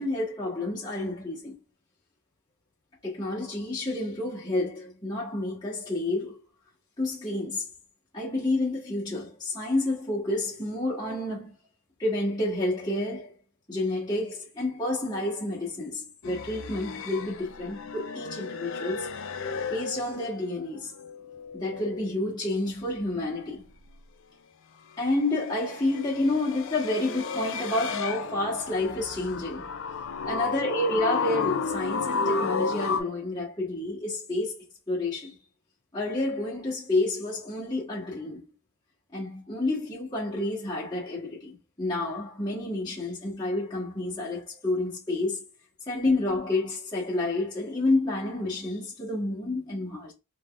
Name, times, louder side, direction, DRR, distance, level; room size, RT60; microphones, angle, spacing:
voice 1, 0.0-1.5 3.0-6.4 7.0-7.7 8.1-11.5 12.0-13.3 13.7-19.1 19.7-20.9 21.5-23.6 25.0-29.7 30.2-35.4 35.9-38.5 39.1-45.4 45.9-50.1, left 2 dB, 20° left, 1.4 m, -29 dB
sound 1, 16.2-20.6 20.9-22.1 25.4-33.0, left 5 dB, 60° left, 0.4 m, -33 dB
3.7 x 3.5 x 2.5 m
head